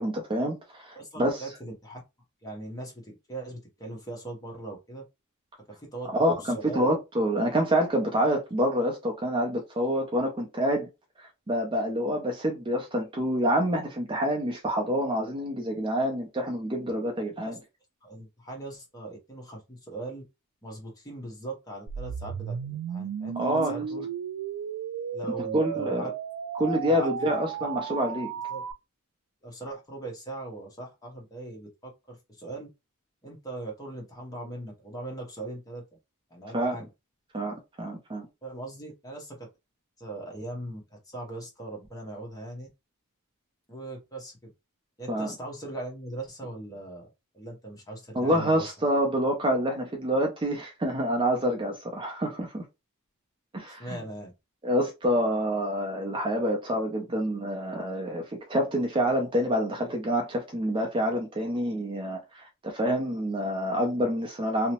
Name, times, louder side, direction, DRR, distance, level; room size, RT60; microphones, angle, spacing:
voice 1, 0.0-1.4 6.1-10.9 11.2-17.6 23.4-23.7 25.5-26.1 26.5-28.3 36.5-36.8 37.3-38.3 45.1-45.3 48.1-52.6 53.5-54.0 54.6-64.7, equal, 25° right, 0.5 m, -27 dB
voice 2, 0.9-2.0 2.4-5.0 5.7-6.9 17.5-17.6 18.0-20.2 20.6-24.1 25.1-26.1 26.6-27.4 27.6-27.7 28.5-28.6 29.4-32.7 33.2-35.8 36.3-36.9 38.4-39.5 40.0-42.7 43.7-44.5 45.0-47.1 47.3-48.7 53.8-54.3, right 2 dB, 15° left, 0.9 m, -40 dB
sound 1, 21.9-28.7, right 8 dB, 80° right, 0.3 m, -34 dB
2.8 x 2.0 x 2.9 m
head